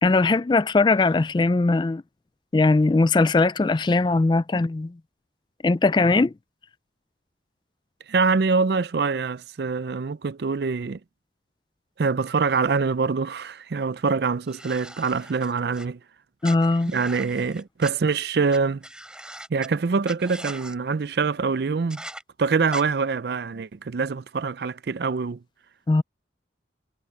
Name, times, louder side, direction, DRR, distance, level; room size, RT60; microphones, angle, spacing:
voice 1, 0.0-2.0 2.5-4.9 5.6-6.3 16.4-16.9 25.9-26.0, left 3 dB, 25° left, 0.3 m, -20 dB
voice 2, 8.1-11.0 12.0-16.0 16.9-18.8 19.5-22.0 22.4-25.4, right 4 dB, 60° right, 0.4 m, -24 dB
sound 1, 14.5-15.9 16.4-17.9 18.5-18.6 18.8-19.7 20.0-20.8 21.9-22.2 22.7-22.8, right 1 dB, 5° right, 6.2 m, -40 dB
head